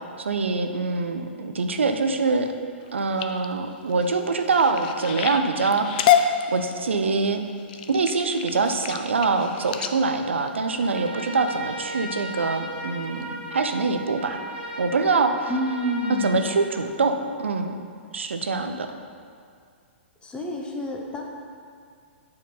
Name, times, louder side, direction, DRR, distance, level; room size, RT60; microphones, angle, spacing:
voice 1, 0.2-2.5 2.9-7.4 7.9-14.4 14.8-15.5 16.2-17.1 17.4-17.8 18.1-19.0, right 4 dB, 80° right, 6 dB, 0.6 m, -24 dB
sound 1, 2.8-11.5 12.1-12.4 12.9-13.2 13.7-13.8 14.1-14.2, left 9 dB, 45° left, 0.4 m, -28 dB
Trumpet, 10.8-17.4, right 1 dB, 65° right, 1.2 m, -37 dB
voice 2, 15.5-16.4 20.2-21.2, equal, 15° left, 0 dB, 0.9 m, -28 dB
8.5 x 4.6 x 3.9 m, 2.2 s
figure-of-eight pair, 115°, 6 cm